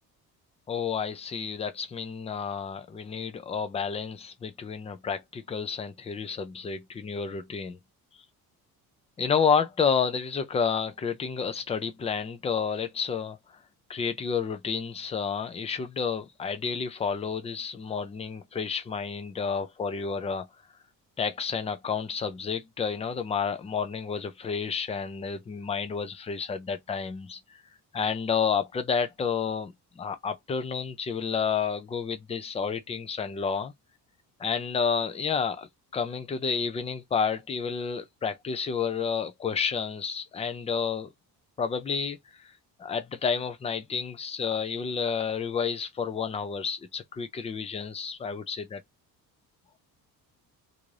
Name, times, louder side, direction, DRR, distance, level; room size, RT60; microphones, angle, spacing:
voice 1, 0.7-7.8 9.2-13.4 13.9-20.5 21.2-27.4 27.9-33.7 34.4-41.1 41.6-42.2 42.8-48.8, left 6 dB, 15° left, 0.4 m, -30 dB
3.5 x 2.7 x 3.2 m
cardioid pair, 165°, 38 cm